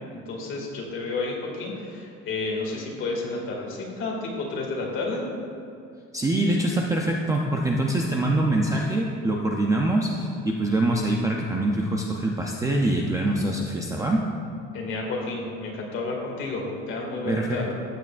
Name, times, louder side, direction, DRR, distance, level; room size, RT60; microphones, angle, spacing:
voice 1, 0.3-5.2 14.7-17.7, left 3 dB, 40° left, -2 dB, 2.1 m, -31 dB
voice 2, 6.1-14.2 17.3-17.7, right 1 dB, 10° right, -1 dB, 0.4 m, -24 dB
14.0 x 9.2 x 2.5 m, 2.3 s
cardioid pair, 170°, 30 cm